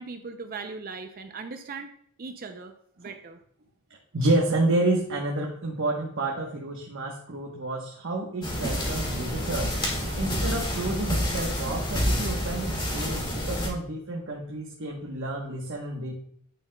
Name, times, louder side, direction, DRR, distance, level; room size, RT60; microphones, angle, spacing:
voice 1, 0.0-1.9 2.2-3.4, right 4 dB, 40° right, 6 dB, 0.5 m, -39 dB
voice 2, 4.1-9.7 10.2-16.1, right 2 dB, 55° right, -1 dB, 1.1 m, -29 dB
sound 1, 8.4-13.7, equal, 20° left, 1.9 m, -28 dB
9.2 x 7.5 x 2.2 m, 0.66 s
head